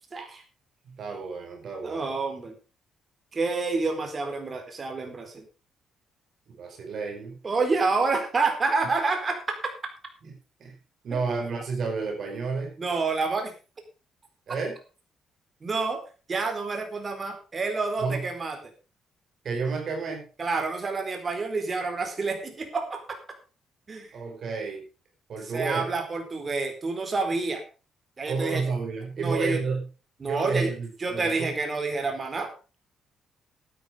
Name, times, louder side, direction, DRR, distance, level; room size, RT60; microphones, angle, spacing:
voice 1, 0.1-0.4 1.8-2.6 3.3-5.4 7.4-9.4 11.1-11.2 12.8-13.5 15.6-16.0 16.3-18.6 20.4-23.0 23.9-24.1 25.4-27.6 28.2-28.6 29.2-29.6 30.2-30.7 31.0-32.5, right 3 dB, 35° right, 6 dB, 4.2 m, -28 dB
voice 2, 0.8-2.1 6.5-7.4 10.2-10.3 10.6-10.7 11.0-12.7 14.5-14.8 18.0-18.2 19.4-20.2 24.1-24.8 25.3-25.9 28.3-29.8 30.2-31.5, right 4 dB, 60° right, 2 dB, 4.9 m, -31 dB
12.0 x 9.6 x 5.1 m, 0.35 s
cardioid pair, 90°, 0 cm